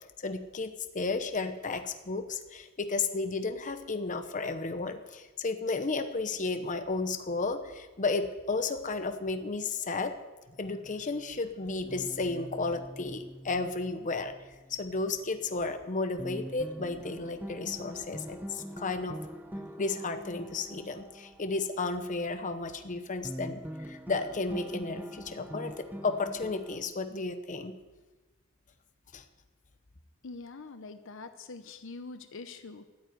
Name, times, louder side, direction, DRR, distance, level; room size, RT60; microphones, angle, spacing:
voice 1, 0.2-10.1 10.6-14.3 14.8-19.2 19.8-27.8 29.1-29.2, left 3 dB, 35° left, 8 dB, 0.9 m, -33 dB
sound 1, 11.9-15.8 16.2-23.0 23.2-26.8, equal, 10° right, 1.0 m, -44 dB
voice 2, 30.2-32.9, left 3 dB, 65° left, 9 dB, 0.8 m, -44 dB
13.5 x 7.9 x 9.4 m, 1.2 s
head